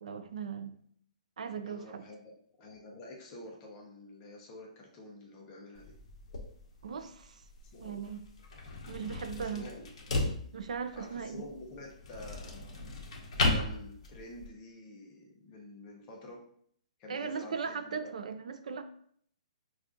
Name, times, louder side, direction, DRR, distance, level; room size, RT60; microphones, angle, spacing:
voice 1, 0.0-0.7 1.4-2.0 6.8-7.4 7.8-8.3 8.9-9.7 10.5-11.4 17.1-18.8, right 6 dB, 65° right, 9 dB, 0.4 m, -38 dB
voice 2, 1.6-2.3 2.6-6.0 7.7-8.0 9.4-9.9 10.9-12.9 13.4-16.4 17.0-18.1, left 1 dB, 15° left, -1 dB, 0.5 m, -48 dB
sound 1, 5.8-14.5, left 2 dB, 45° left, 0.8 m, -36 dB
5.6 x 2.4 x 2.5 m, 0.63 s
hypercardioid pair, 180°, 4 cm